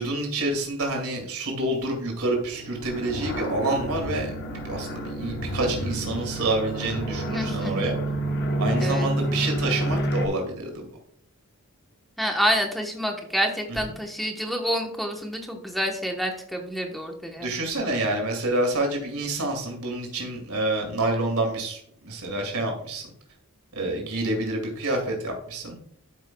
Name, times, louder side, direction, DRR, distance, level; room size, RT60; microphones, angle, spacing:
voice 1, 0.0-8.0 8.6-10.8 17.4-23.0 23.7-25.8, right 2 dB, 85° right, 1 dB, 2.3 m, -28 dB
sound 1, 2.5-10.3, right 1 dB, 50° left, 0.9 m, -29 dB
voice 2, 7.3-7.8 8.8-9.1 12.2-17.5, equal, ahead, 2 dB, 1.0 m, -28 dB
12.5 x 5.5 x 2.2 m, 0.66 s
head